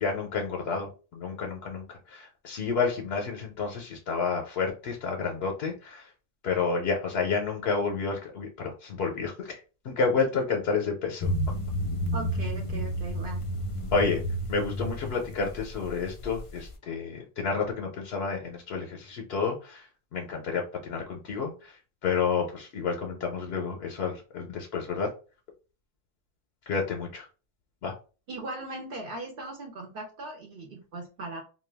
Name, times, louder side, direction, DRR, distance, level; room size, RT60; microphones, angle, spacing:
voice 1, 0.0-6.1 6.4-11.3 13.9-14.2 14.5-25.1 26.7-27.3 27.8-27.9, left 5 dB, 80° left, 2 dB, 0.8 m, -30 dB
sound 1, 11.2-16.7, equal, 55° left, 0.4 m, -31 dB
voice 2, 12.1-13.4 28.3-31.4, right 2 dB, 65° right, 1 dB, 0.7 m, -38 dB
2.2 x 2.1 x 3.2 m, 0.34 s
omnidirectional pair, 1.0 m